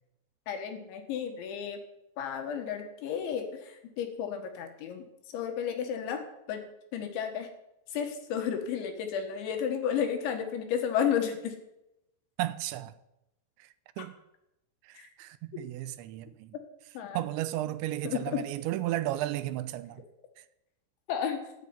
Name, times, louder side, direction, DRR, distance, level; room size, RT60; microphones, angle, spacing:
voice 1, 0.5-1.8 2.2-5.1 5.3-6.6 6.9-7.5 7.9-11.5 15.0-15.1 17.0-17.2 18.0-18.4 21.1-21.4, left 8 dB, 80° left, 4.0 m, -32 dB
voice 2, 12.4-12.9 13.6-13.7 14.0-14.2 14.8-16.6 17.1-20.0, right 15 dB, 85° right, 3.0 m, -34 dB
14.0 x 9.4 x 9.6 m
omnidirectional pair, 5.2 m